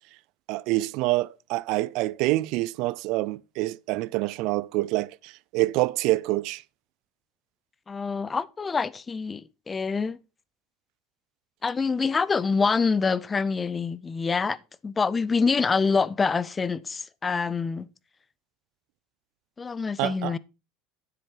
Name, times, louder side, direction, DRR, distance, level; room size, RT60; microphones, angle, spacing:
voice 1, 0.5-6.6 20.0-20.4, right 19 dB, 65° right, 0.4 m, -26 dB
voice 2, 7.9-10.2 11.6-14.6 14.8-17.9 19.6-20.4, left 5 dB, 20° left, 0.6 m, -26 dB
9.7 x 7.8 x 4.5 m
supercardioid pair, 120°, 0 cm